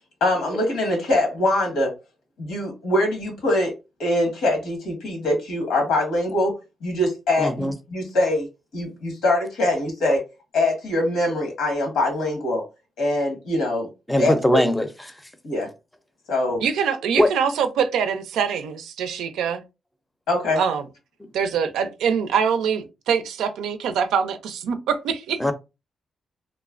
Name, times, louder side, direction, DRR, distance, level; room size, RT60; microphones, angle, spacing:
voice 1, 0.2-1.9 2.4-8.5 8.7-10.2 10.5-12.6 13.0-13.9 14.2-14.6 15.4-15.7 16.3-16.6 20.3-20.6, left 1 dB, 90° left, 1.4 m, -23 dB
voice 2, 7.4-7.7 14.1-15.2 17.2-17.3 25.4-25.5, equal, 5° left, 0.5 m, -20 dB
voice 3, 16.6-19.6 20.6-20.8 21.3-25.4, right 7 dB, 90° right, 0.4 m, -24 dB
3.1 x 2.1 x 2.4 m
cardioid pair, 70°, 0 cm